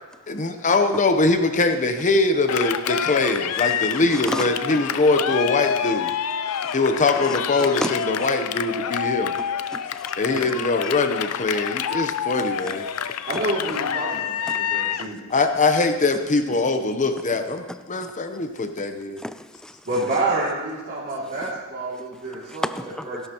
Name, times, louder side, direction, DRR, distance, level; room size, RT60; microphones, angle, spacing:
voice 1, 0.3-6.1 6.7-9.3 10.2-12.9 15.3-19.2, left 3 dB, 35° left, 7 dB, 0.8 m, -22 dB
Cheering, 2.5-15.1, left 8 dB, 70° left, 0.5 m, -27 dB
voice 2, 3.7-4.5 6.5-6.8 7.2-8.1 9.4-10.1 10.8-10.9 13.1-13.2 14.1-14.6 17.7-18.1 19.2-20.1 22.4-23.2, equal, 5° left, 11 dB, 0.4 m, -34 dB
voice 3, 13.2-15.2 19.8-23.2, right 2 dB, 45° right, -10 dB, 2.7 m, -28 dB
16.5 x 11.5 x 3.0 m, 1.3 s
head